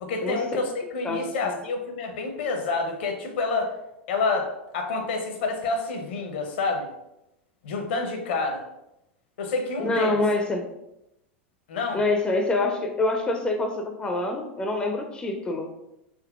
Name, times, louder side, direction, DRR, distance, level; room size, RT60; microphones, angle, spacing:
voice 1, 0.0-3.7 4.1-6.9 7.6-8.6 9.4-10.2 11.7-12.0, left 3 dB, 60° left, 4 dB, 0.6 m, -28 dB
voice 2, 1.0-1.6 9.8-10.7 11.9-15.7, left 2 dB, 15° left, 3 dB, 0.4 m, -26 dB
3.8 x 2.7 x 2.3 m, 0.87 s
figure-of-eight pair, 85°, 7 cm